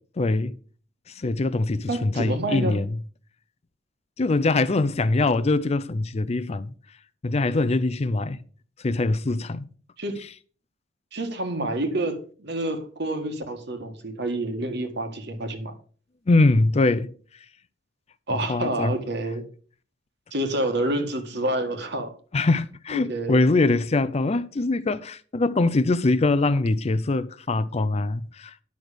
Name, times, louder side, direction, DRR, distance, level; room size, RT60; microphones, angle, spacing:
voice 1, 0.2-0.5 1.1-3.0 4.2-6.7 7.2-8.4 8.8-9.7 10.2-10.3 16.3-17.1 18.5-18.9 22.3-28.5, left 2 dB, 35° left, 0.5 m, -23 dB
voice 2, 1.9-2.8 10.0-10.2 11.1-15.7 18.3-19.4 20.3-22.1 22.9-23.4, right 1 dB, 60° right, 1.7 m, -28 dB
10.5 x 6.1 x 5.0 m
head